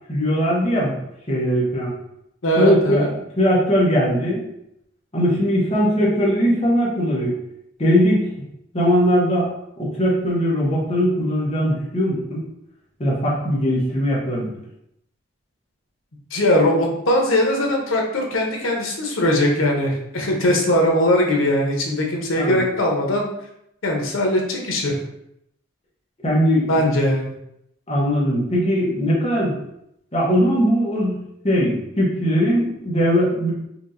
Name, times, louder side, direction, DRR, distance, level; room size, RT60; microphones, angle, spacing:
voice 1, 0.1-0.9 1.3-1.9 2.6-3.1 3.4-4.4 5.1-7.4 7.8-8.3 8.7-9.5 9.8-12.4 13.0-14.5 22.4-22.6 26.2-26.9 27.9-29.5 30.1-31.2 31.4-33.5, equal, 30° left, -5 dB, 1.1 m, -20 dB
voice 2, 2.4-3.1 16.3-23.3 23.8-25.0 26.7-27.3, left 1 dB, 90° left, 1 dB, 0.9 m, -20 dB
4.5 x 2.6 x 2.6 m, 0.78 s
head